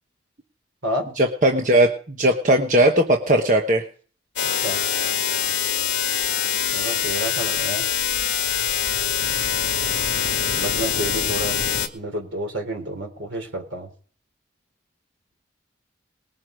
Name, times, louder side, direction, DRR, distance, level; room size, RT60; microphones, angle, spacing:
voice 1, 1.2-3.8, right 1 dB, 40° right, 2 dB, 1.2 m, -18 dB
sound 1, 4.4-11.9, left 8 dB, 65° left, 2.1 m, -24 dB
voice 2, 4.4-4.8 6.7-7.9 10.6-11.5 11.9-13.9, right 1 dB, 75° right, 4 dB, 3.8 m, -30 dB
20.5 x 7.9 x 5.2 m, 0.43 s
head